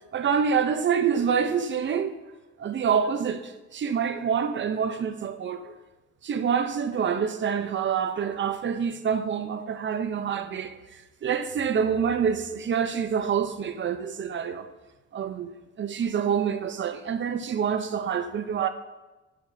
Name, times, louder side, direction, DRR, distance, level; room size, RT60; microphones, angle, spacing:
voice 1, 0.1-2.1 2.6-5.7 6.2-10.7 11.2-14.7 15.1-15.5 15.8-18.7, right 7 dB, 40° right, 0.6 m, -26 dB
8.4 x 5.2 x 2.6 m
cardioid pair, 90°, 30 cm